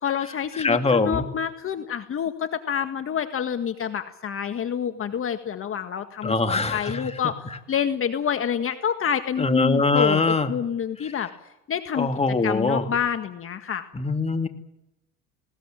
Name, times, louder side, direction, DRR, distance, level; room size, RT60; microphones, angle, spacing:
voice 1, 0.0-11.3 11.7-12.1 12.4-13.9, left 8 dB, 45° left, 8 dB, 1.8 m, -28 dB
voice 2, 0.6-1.3 6.2-7.0 9.4-10.5 11.9-12.8 13.9-14.5, left 3 dB, 20° left, 7 dB, 2.6 m, -22 dB
20.5 x 19.0 x 9.1 m, 0.88 s
supercardioid pair, 90°, 32 cm